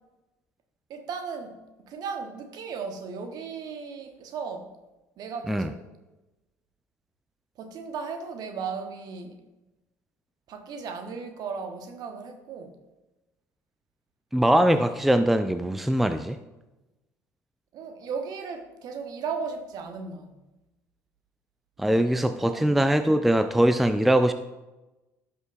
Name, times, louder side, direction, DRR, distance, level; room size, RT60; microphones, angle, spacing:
voice 1, 0.9-1.6 1.8-4.7 5.2-5.8 7.6-9.4 10.5-12.7 17.7-20.4 21.8-22.2 22.5-22.8, right 5 dB, 50° right, 6 dB, 1.2 m, -36 dB
voice 2, 14.3-16.4 21.8-24.3, right 1 dB, ahead, 11 dB, 0.4 m, -22 dB
16.0 x 6.1 x 2.4 m, 1.1 s
figure-of-eight pair, 60°, 9 cm